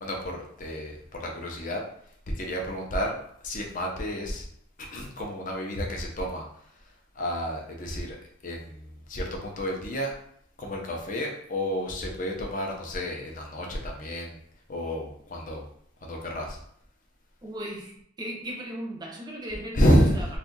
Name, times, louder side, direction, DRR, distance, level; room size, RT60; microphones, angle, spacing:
voice 1, 0.0-1.8 2.3-3.2 3.4-4.5 4.8-6.5 7.1-8.2 8.4-10.1 10.6-14.4 14.7-15.6 16.0-16.6 19.7-20.2, equal, 40° left, 0 dB, 0.6 m, -29 dB
voice 2, 17.4-17.9 18.2-19.9 20.1-20.3, equal, 20° right, -1 dB, 0.6 m, -36 dB
2.6 x 2.4 x 3.8 m, 0.67 s
head